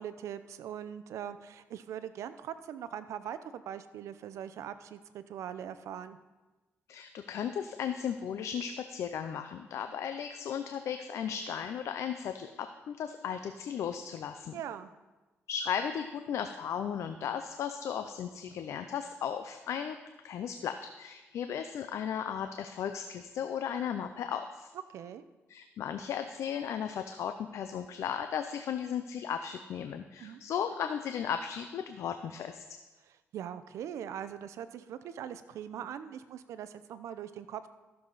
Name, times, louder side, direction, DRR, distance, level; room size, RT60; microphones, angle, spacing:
voice 1, 0.0-6.2 14.5-14.9 24.9-25.2 30.2-30.4 33.3-37.7, right 9 dB, 85° right, 12 dB, 0.6 m, -41 dB
voice 2, 6.9-14.6 15.5-20.0 20.2-24.7 25.5-32.6, left 8 dB, 75° left, 8 dB, 0.5 m, -36 dB
13.5 x 7.0 x 4.0 m, 1.1 s
cardioid pair, 95°, 5 cm